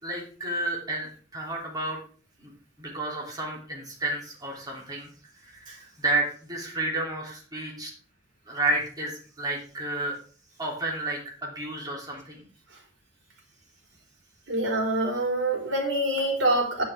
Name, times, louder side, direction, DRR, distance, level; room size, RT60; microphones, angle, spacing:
voice 1, 0.0-2.0 2.4-2.5 2.8-5.1 5.4-7.9 8.5-10.1 10.6-12.5, right 2 dB, 20° right, -2 dB, 3.1 m, -31 dB
voice 2, 14.5-16.8, right 1 dB, 85° right, 1 dB, 4.1 m, -25 dB
10.0 x 9.9 x 3.5 m, 0.43 s
head